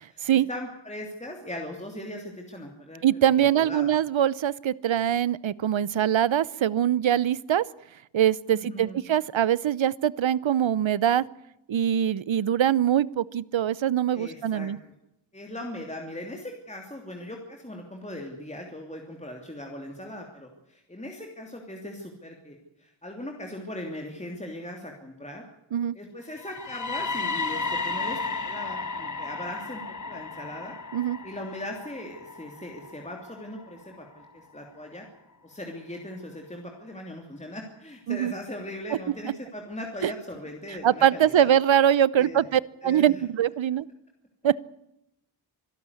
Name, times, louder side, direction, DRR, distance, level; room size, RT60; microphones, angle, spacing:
voice 1, 0.1-3.9 8.5-9.0 14.1-14.7 15.3-25.4 25.9-30.7 31.2-35.0 35.4-41.6 42.2-42.4 42.8-43.2, left 1 dB, 15° left, 1 dB, 3.0 m, -39 dB
voice 2, 3.0-7.6 8.1-11.2 11.7-14.8 25.7-26.0 30.9-31.2 38.1-38.3 39.2-39.3 40.0-40.1 40.8-43.9 44.4-44.6, right 10 dB, 70° right, 21 dB, 0.8 m, -23 dB
sound 1, 26.4-34.3, left 3 dB, 40° left, 1.3 m, -34 dB
25.5 x 12.0 x 9.8 m, 0.86 s
wide cardioid pair, 105°, 48 cm